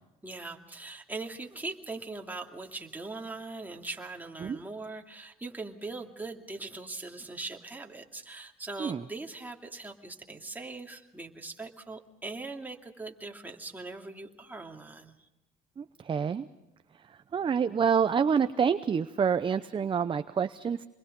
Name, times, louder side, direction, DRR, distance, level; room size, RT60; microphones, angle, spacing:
voice 1, 0.2-15.3, right 3 dB, 10° right, 2 dB, 2.5 m, -41 dB
voice 2, 15.8-16.5 17.1-20.8, right 6 dB, 30° right, 11 dB, 0.7 m, -27 dB
27.5 x 21.5 x 5.3 m, 0.97 s
cardioid pair, 110°, 17 cm